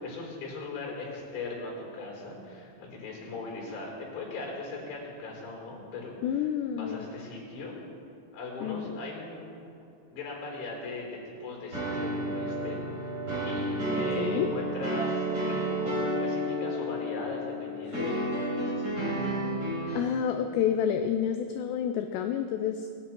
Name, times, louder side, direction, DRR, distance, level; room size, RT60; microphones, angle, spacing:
voice 1, 0.0-7.7 8.3-9.5 10.1-19.2, left 3 dB, 60° left, -2 dB, 6.1 m, -39 dB
voice 2, 6.2-7.1 8.6-9.0 14.2-14.5 17.9-18.0 19.9-22.9, left 9 dB, 90° left, 7 dB, 2.4 m, -29 dB
sound 1, 11.7-20.0, right 1 dB, 20° right, 4.8 m, -31 dB
21.5 x 11.0 x 4.5 m, 2.6 s
omnidirectional pair, 5.6 m